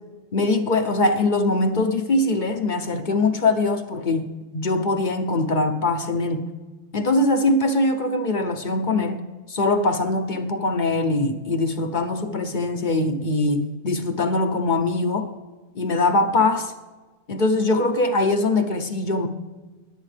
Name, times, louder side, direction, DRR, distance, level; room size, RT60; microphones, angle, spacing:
voice 1, 0.3-6.4 6.9-15.3 15.8-16.7 17.3-19.3, left 2 dB, 45° left, 7 dB, 0.8 m, -22 dB
20.5 x 8.4 x 3.3 m, 1.3 s
omnidirectional pair, 1.3 m